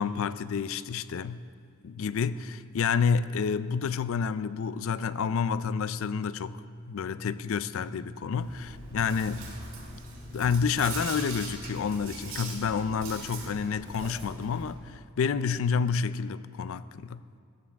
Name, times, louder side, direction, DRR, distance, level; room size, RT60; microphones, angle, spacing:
voice 1, 0.0-1.4 1.8-6.6 6.9-9.5 10.3-17.2, left 6 dB, 65° left, 0.4 m, -29 dB
sound 1, 3.0-12.0, left 1 dB, 20° left, 1.0 m, -48 dB
Chewing mastication, 8.4-14.7, right 3 dB, 70° right, 3.3 m, -41 dB
16.0 x 14.5 x 3.5 m
head